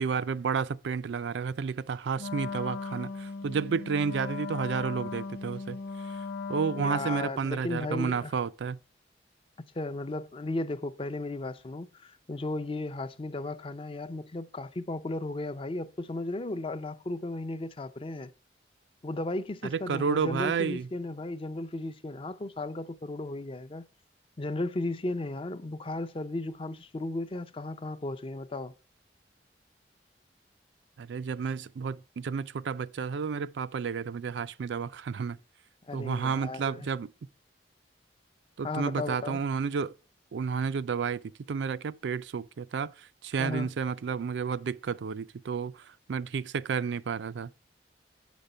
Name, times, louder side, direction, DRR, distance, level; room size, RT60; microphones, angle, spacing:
voice 1, 0.0-5.8 6.1-8.8 19.6-20.9 31.0-35.4 35.9-37.1 38.6-39.9 40.3-41.2 41.5-47.5, right 6 dB, 85° right, 0.4 m, -31 dB
Wind instrument woodwind instrument, 2.2-7.3, left 4 dB, 60° left, 0.8 m, -38 dB
voice 2, 6.8-8.4 9.7-18.3 19.0-23.8 24.4-28.7 35.9-36.9 38.6-39.4 43.4-43.7, left 2 dB, 30° left, 0.5 m, -35 dB
8.0 x 5.2 x 5.4 m
head